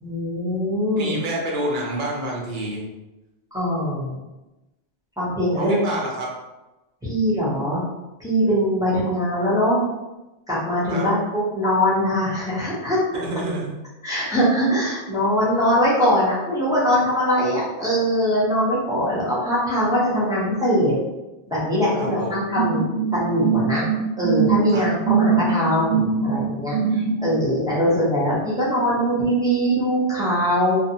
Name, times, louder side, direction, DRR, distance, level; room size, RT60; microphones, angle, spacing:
voice 1, 0.0-1.2 3.5-4.1 5.2-5.8 7.0-7.8 8.2-9.8 10.5-13.2 14.0-20.9 21.5-22.8 23.1-23.9 24.2-30.8, equal, 5° right, -9 dB, 0.7 m, -22 dB
voice 2, 1.0-2.8 5.6-6.3 10.9-11.1 13.1-13.8 21.9-22.4 24.7-24.9, right 1 dB, 50° right, -3 dB, 0.7 m, -28 dB
sound 1, 22.5-27.3, right 6 dB, 85° right, 1.0 m, -22 dB
2.5 x 2.1 x 2.7 m, 1.0 s
omnidirectional pair, 1.2 m